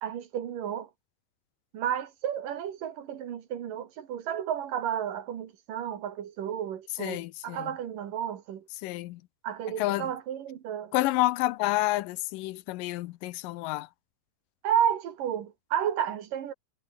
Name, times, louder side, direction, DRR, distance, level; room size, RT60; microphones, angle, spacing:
voice 1, 0.0-0.9 1.7-8.7 9.4-10.9 14.6-16.5, right 9 dB, 70° right, 3.6 m, -32 dB
voice 2, 7.0-7.7 8.8-9.2 9.8-10.1 10.9-13.9, left 17 dB, 80° left, 2.3 m, -29 dB
omnidirectional pair, 4.0 m